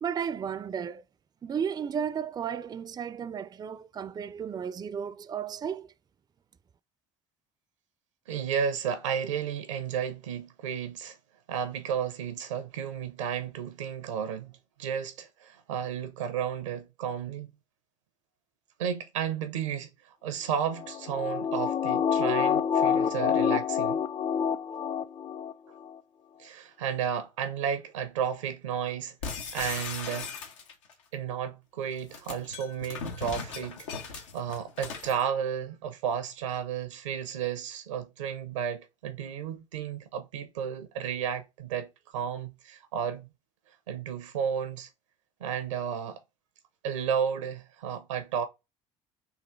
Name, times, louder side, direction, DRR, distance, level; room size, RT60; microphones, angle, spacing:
voice 1, 0.0-1.0 1.4-5.9, right 7 dB, 25° right, 0.4 m, -34 dB
voice 2, 8.3-11.2 11.5-14.5 14.8-17.5 18.8-19.9 20.2-24.0 26.4-30.3 31.1-43.3 43.9-44.9 45.4-46.2 46.8-48.4, right 8 dB, 90° right, 0.8 m, -33 dB
sound 1, 20.7-25.5 25.9-26.0, left 8 dB, 35° left, 0.5 m, -27 dB
sound 2, 29.2-30.9 31.9-35.2, left 5 dB, 90° left, 0.9 m, -38 dB
3.9 x 2.7 x 4.4 m
hypercardioid pair, 65°, 15 cm